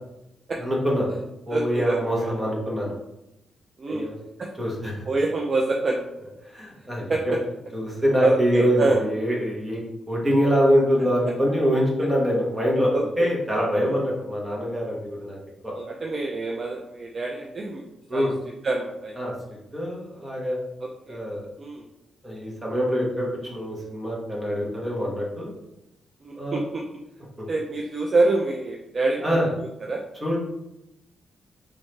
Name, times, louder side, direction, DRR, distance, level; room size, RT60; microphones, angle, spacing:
voice 1, 0.6-1.1 1.5-2.9 3.9-4.1 4.6-5.0 6.5-7.3 7.7-9.8 10.1-15.4 15.6-15.7 18.1-18.3 19.2-19.3 19.7-20.6 21.1-21.5 22.2-25.5 26.3-26.6 27.4-27.5 29.2-29.5 30.2-30.4, equal, 15° right, -4 dB, 1.3 m, -24 dB
voice 2, 1.5-2.3 3.8-4.0 4.4-4.5 5.1-6.0 7.1-7.4 8.2-9.0 12.9-13.0 13.8-14.0 15.8-17.8 18.1-18.3 18.6-19.1 20.8-21.2 21.6-21.8 26.2-26.8 27.5-29.4 29.8-30.0, right 3 dB, 35° right, 1 dB, 0.4 m, -26 dB
3.6 x 3.2 x 3.2 m, 0.89 s
cardioid pair, 130°, 0 cm